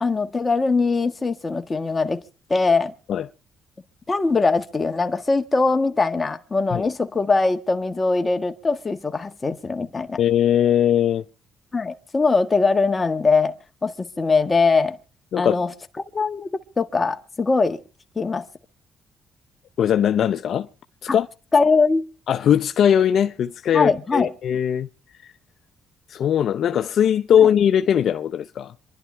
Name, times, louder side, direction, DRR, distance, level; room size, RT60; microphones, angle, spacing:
voice 1, 0.0-2.2 2.5-2.9 4.1-10.2 11.7-13.6 13.8-15.0 15.4-15.7 16.1-16.5 16.8-17.8 18.1-18.4 21.1-21.2 21.5-22.1 23.7-24.3, left 4 dB, 25° left, 1.5 m, -21 dB
voice 2, 10.2-11.2 15.3-15.6 19.8-20.7 21.1-21.3 22.3-24.9 26.1-28.7, left 9 dB, 65° left, 0.6 m, -20 dB
26.5 x 11.0 x 3.4 m
cardioid pair, 90°, 0 cm